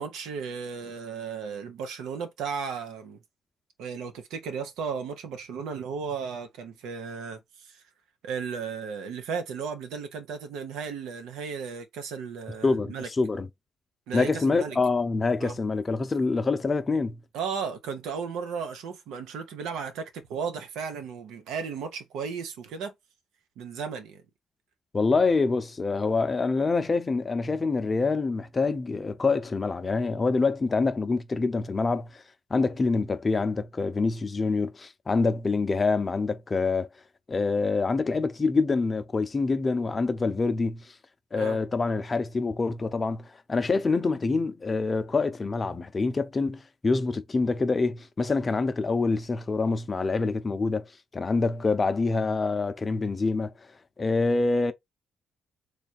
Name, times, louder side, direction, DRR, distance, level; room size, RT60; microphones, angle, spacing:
voice 1, 0.0-3.2 3.8-7.8 8.2-13.1 14.1-14.8 15.4-15.5 17.3-22.9 23.6-24.2 41.4-41.6, right 6 dB, 90° right, 0.9 m, -35 dB
voice 2, 12.6-13.5 14.1-17.2 24.9-32.2 32.5-36.9 37.3-40.9 41.3-53.5 54.0-54.7, left 3 dB, 30° left, 0.6 m, -26 dB
3.3 x 2.4 x 4.2 m
cardioid pair, 90°, 0 cm